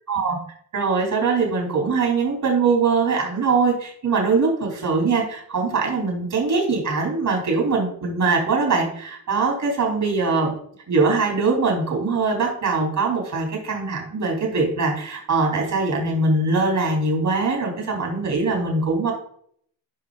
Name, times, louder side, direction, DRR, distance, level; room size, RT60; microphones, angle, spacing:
voice 1, 0.7-10.5 10.9-19.1, right 4 dB, 50° right, -1 dB, 4.1 m, -22 dB
11.0 x 5.1 x 4.1 m, 0.62 s
cardioid pair, 90°, 41 cm